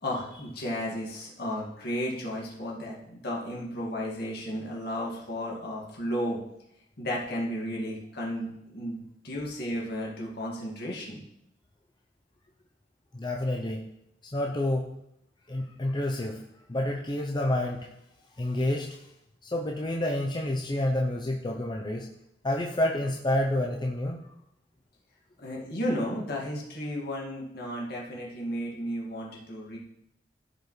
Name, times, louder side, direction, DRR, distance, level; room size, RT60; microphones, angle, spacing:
voice 1, 0.0-6.4 7.0-9.0 9.2-11.2 25.4-29.8, equal, 60° left, -3 dB, 2.1 m, -33 dB
voice 2, 13.1-13.8 14.2-14.9 15.5-16.4 16.7-17.9 18.4-19.0 19.4-22.1 22.4-24.2, left 1 dB, 25° left, 0 dB, 0.6 m, -29 dB
15.0 x 5.2 x 3.2 m, 0.79 s
head